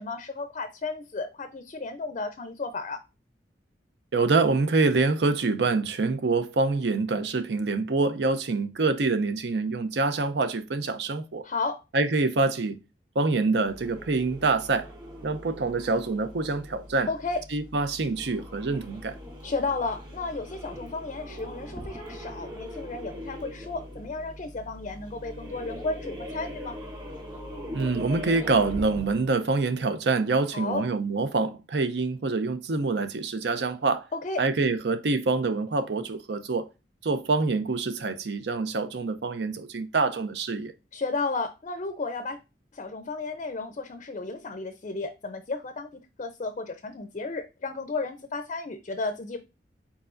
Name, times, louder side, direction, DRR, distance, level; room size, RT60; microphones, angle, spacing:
voice 1, 0.0-3.0 11.4-11.8 17.1-17.4 19.4-26.8 30.5-30.8 34.1-34.4 40.9-42.4 42.7-45.9 46.2-49.4, left 3 dB, 40° left, 0.5 m, -33 dB
voice 2, 4.1-11.4 11.9-12.8 13.2-14.9 15.2-17.1 17.5-19.2 27.7-34.0 34.4-36.7 37.0-40.7, right 3 dB, 70° right, 0.6 m, -26 dB
sound 1, 13.6-29.3, equal, 25° right, 2.0 m, -41 dB
4.7 x 4.2 x 2.5 m
head